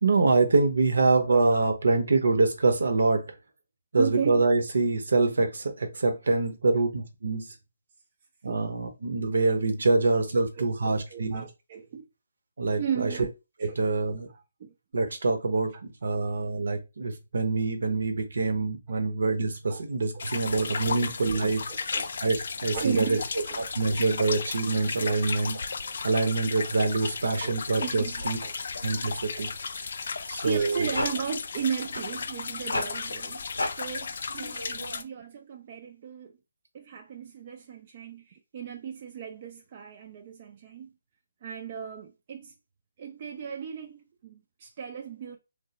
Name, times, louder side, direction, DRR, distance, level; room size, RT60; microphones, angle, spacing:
voice 1, 0.0-3.3 3.9-7.5 8.4-11.5 12.6-13.1 13.6-14.3 14.9-21.6 22.2-23.2 23.8-25.6 26.0-28.4 28.8-29.5 30.3-30.9 34.4-35.0, right 3 dB, 70° right, 0.7 m, -25 dB
voice 2, 4.0-4.4 8.5-8.6 10.6-12.0 12.8-13.3 13.6-13.8 14.3-14.7 15.7-16.2 18.9-19.1 19.7-19.8 20.1-22.1 22.7-23.7 24.7-24.9 25.5-25.9 26.6-28.9 29.3-29.5 30.4-33.5 33.8-36.3 36.7-40.9 41.4-42.5 43.0-45.4, right 8 dB, 35° right, 0.3 m, -37 dB
sound 1, 20.2-35.0, left 5 dB, 60° left, 0.3 m, -35 dB
sound 2, 30.5-34.0, left 2 dB, 90° left, 0.7 m, -35 dB
3.2 x 2.1 x 2.8 m
figure-of-eight pair, 155°, 0 cm